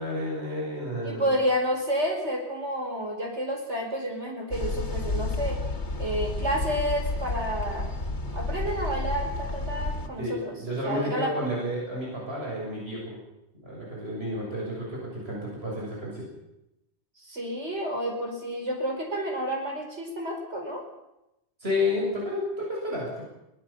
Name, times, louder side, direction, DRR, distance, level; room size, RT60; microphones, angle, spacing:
voice 1, 0.0-1.4 10.2-13.2 13.6-16.3 21.6-23.2, left 1 dB, 65° right, -3 dB, 7.4 m, -31 dB
voice 2, 1.0-5.6 6.0-7.9 8.3-10.6 10.8-11.3 17.2-20.8, equal, 85° right, 2 dB, 5.2 m, -30 dB
sound 1, 4.5-10.1, left 2 dB, 85° left, 2.3 m, -31 dB
22.5 x 18.5 x 7.2 m, 0.89 s
omnidirectional pair, 1.1 m